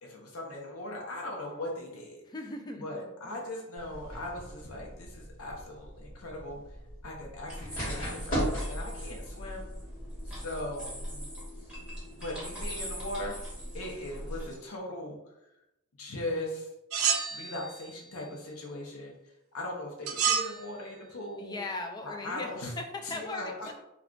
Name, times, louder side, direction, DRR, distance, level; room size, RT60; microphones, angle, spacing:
voice 1, 0.0-2.2 2.8-6.6 7.0-9.7 10.3-11.3 12.2-13.3 13.7-15.2 16.0-16.7 17.3-19.1 19.5-21.6 22.0-22.7 23.0-23.7, left 1 dB, 80° left, -1 dB, 0.6 m, -39 dB
voice 2, 2.3-2.9 3.2-3.3 21.4-23.7, left 2 dB, 20° left, 4 dB, 0.3 m, -38 dB
sound 1, 3.8-10.9, equal, 40° left, 1.3 m, -38 dB
sound 2, 7.5-14.6, equal, 5° right, 1.1 m, -41 dB
sound 3, 16.9-17.9 20.1-20.6, right 7 dB, 75° right, 0.4 m, -29 dB
2.3 x 2.3 x 3.6 m, 0.89 s
head